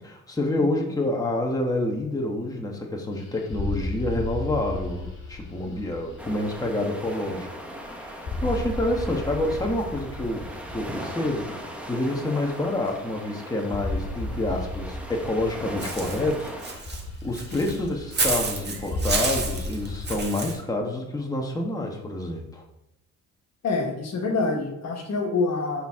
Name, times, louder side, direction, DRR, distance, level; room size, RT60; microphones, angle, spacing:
voice 1, 0.0-22.6, left 1 dB, 10° left, 0 dB, 1.4 m, -28 dB
sound 1, 3.1-7.9 8.2-12.5 12.8-13.3 13.6-20.2, left 2 dB, 40° left, 2.6 m, -35 dB
sound 2, 6.2-16.8, equal, 5° right, 1.4 m, -39 dB
Walk footsteps / Bird, 15.8-20.6, right 3 dB, 35° right, 1.9 m, -30 dB
voice 2, 23.6-25.9, left 3 dB, 60° left, 2 dB, 1.7 m, -26 dB
11.0 x 4.6 x 3.7 m, 0.84 s
cardioid pair, 90°, 30 cm